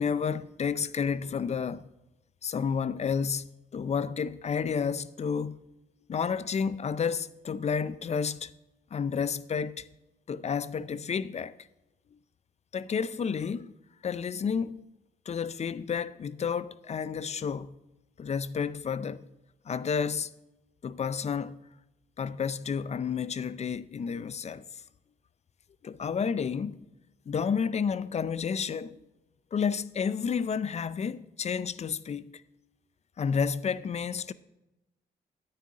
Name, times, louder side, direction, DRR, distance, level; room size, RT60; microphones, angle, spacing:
voice 1, 0.0-1.8 2.4-5.6 6.1-8.5 8.9-9.9 10.3-11.6 12.7-13.7 14.0-14.8 15.3-17.7 18.2-19.3 19.7-20.3 20.8-21.6 22.2-24.6 25.8-26.8 27.3-29.0 29.5-32.3 33.2-34.3, left 6 dB, 40° left, 0.5 m, -31 dB
9.8 x 9.7 x 3.7 m
cardioid pair, 80°, 17 cm